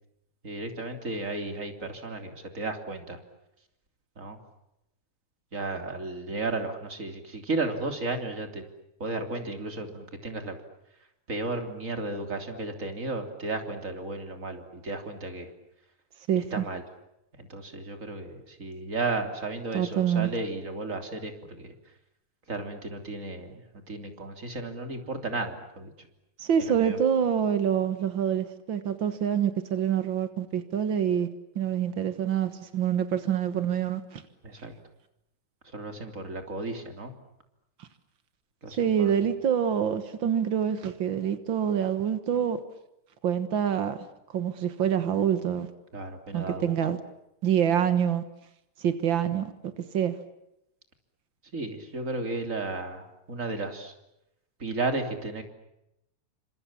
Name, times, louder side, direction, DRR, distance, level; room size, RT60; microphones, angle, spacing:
voice 1, 0.4-3.2 4.2-4.4 5.5-8.6 9.0-10.6 11.3-15.5 16.3-16.8 17.4-21.7 22.5-25.9 26.6-27.0 34.4-34.7 35.7-37.1 38.6-39.2 45.9-46.7 51.5-53.9 54.6-55.4, right 2 dB, 20° right, 3.2 m, -34 dB
voice 2, 16.3-16.6 19.7-20.3 26.4-31.3 31.5-34.2 37.8-37.9 38.8-42.6 43.2-44.0 44.3-45.7 46.3-47.0 47.4-48.2 48.8-50.1, right 8 dB, 80° right, 1.0 m, -26 dB
30.0 x 26.0 x 7.3 m
omnidirectional pair, 4.4 m